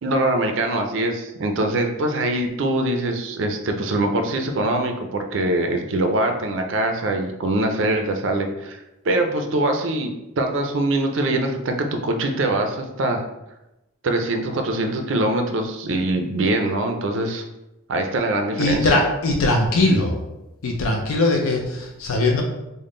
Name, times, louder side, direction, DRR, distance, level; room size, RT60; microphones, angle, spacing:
voice 1, 0.0-13.3 14.0-17.4 17.9-19.0, right 2 dB, 60° right, 4 dB, 0.4 m, -23 dB
voice 2, 18.6-20.2 20.6-22.4, left 2 dB, 80° left, 1 dB, 0.5 m, -20 dB
3.6 x 2.1 x 3.7 m, 0.94 s
head